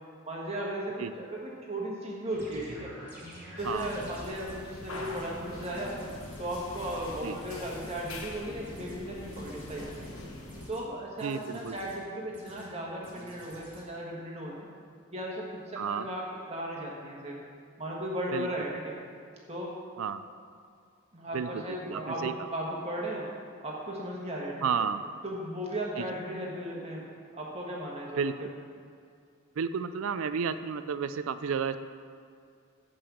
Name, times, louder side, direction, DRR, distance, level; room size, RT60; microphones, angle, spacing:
voice 1, 0.3-2.9 3.6-6.0 6.4-10.0 10.7-14.7 15.1-17.4 17.8-18.9 19.5-19.7 21.1-23.3 23.6-24.7 25.2-27.0 27.3-28.2, right 1 dB, 30° right, -3 dB, 1.5 m, -36 dB
sound 1, 2.3-4.6 4.9-5.3 5.6-6.4 6.8-7.1 7.5-8.3 8.6-9.0 9.3-10.1 10.5-10.8 11.2-12.0 12.3-12.7 13.0-13.8, equal, 10° right, 2.3 m, -50 dB
sound 2, 3.6-10.7, left 1 dB, 85° left, 1.3 m, -43 dB
voice 2, 11.2-11.9 15.8-16.1 18.3-18.5 20.0-20.2 21.3-22.3 24.6-25.0 26.0-26.1 28.2-28.5 29.6-31.8, right 6 dB, 80° right, 12 dB, 0.4 m, -32 dB
8.5 x 5.4 x 7.0 m, 2.2 s
head